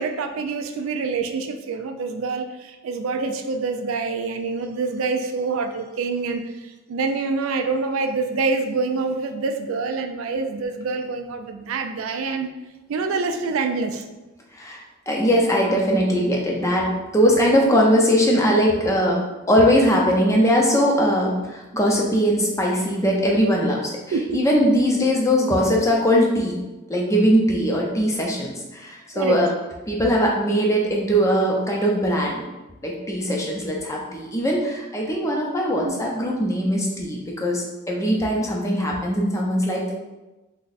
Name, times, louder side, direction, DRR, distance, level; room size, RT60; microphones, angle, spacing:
voice 1, 0.0-12.5 12.9-14.0 24.1-24.4 29.1-29.4 35.7-35.9, right 4 dB, 75° right, 6 dB, 0.3 m, -26 dB
voice 2, 14.5-23.9 24.3-26.6 26.9-29.5 29.9-32.4 32.8-39.9, equal, 15° left, -1 dB, 0.5 m, -20 dB
3.4 x 2.1 x 4.0 m, 1.1 s
head